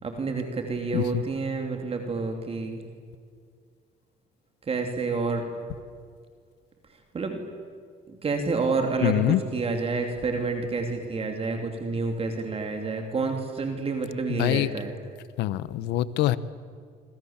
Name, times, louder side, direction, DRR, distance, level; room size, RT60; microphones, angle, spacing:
voice 1, 0.0-2.8 4.7-5.5 7.1-7.4 8.1-14.9, right 4 dB, 35° right, 4 dB, 2.9 m, -29 dB
voice 2, 0.9-1.2 9.0-9.4 14.3-14.7 15.4-16.4, left 14 dB, 85° left, 17 dB, 1.0 m, -24 dB
27.0 x 25.5 x 7.4 m, 2.1 s
cardioid pair, 110°, 17 cm